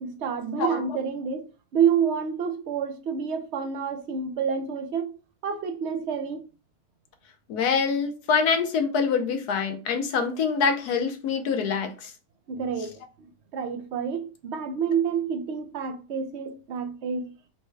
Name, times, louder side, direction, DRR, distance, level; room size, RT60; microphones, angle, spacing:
voice 1, 0.0-5.1 5.4-6.5 12.5-12.9 13.5-17.3, right 7 dB, 55° right, 0.8 m, -28 dB
voice 2, 7.5-12.1, left 5 dB, 85° left, 1.3 m, -25 dB
4.3 x 2.2 x 4.6 m
omnidirectional pair, 1.6 m